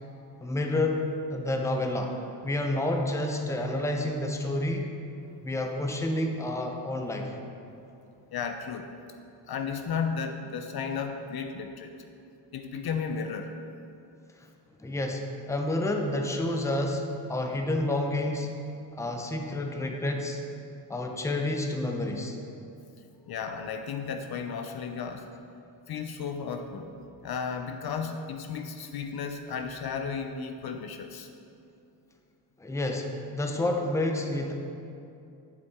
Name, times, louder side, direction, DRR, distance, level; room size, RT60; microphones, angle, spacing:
voice 1, 0.4-2.1 2.4-4.9 5.4-7.4 14.8-18.6 18.9-20.4 20.9-22.4 32.6-34.5, left 1 dB, 5° left, 3 dB, 0.6 m, -29 dB
voice 2, 8.3-8.9 9.5-11.9 12.5-13.5 23.3-25.3 25.9-26.9 27.2-31.3, left 6 dB, 55° left, 6 dB, 0.6 m, -34 dB
8.4 x 6.8 x 3.6 m, 2.7 s
cardioid pair, 100°, 45 cm